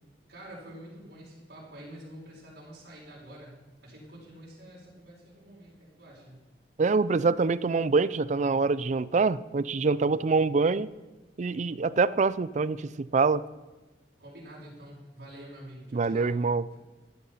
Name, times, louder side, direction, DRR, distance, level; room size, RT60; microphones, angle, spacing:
voice 1, 0.3-3.5 3.8-6.4 14.2-16.4, right 1 dB, 70° right, -7 dB, 5.1 m, -47 dB
voice 2, 6.8-10.9 11.4-13.4 15.9-16.6, right 4 dB, 40° right, 18 dB, 0.4 m, -25 dB
14.0 x 10.5 x 5.6 m, 1.2 s
head